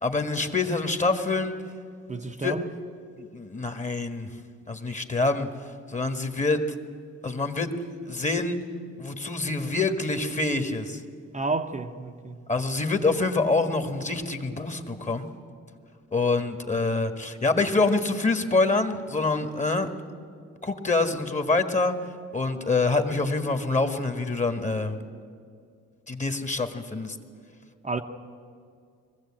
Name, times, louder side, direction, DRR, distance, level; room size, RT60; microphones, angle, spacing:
voice 1, 0.0-1.5 2.4-2.6 3.2-4.3 4.7-5.5 5.9-6.6 7.2-7.7 8.0-8.6 9.0-11.0 12.5-15.3 16.1-19.9 20.6-21.9 22.3-25.0 26.1-27.2, left 3 dB, 25° left, 1.6 m, -26 dB
voice 2, 2.1-2.7 11.3-12.4 27.8-28.0, right 3 dB, 25° right, 0.9 m, -30 dB
21.5 x 14.5 x 8.7 m
cardioid pair, 90°, 30 cm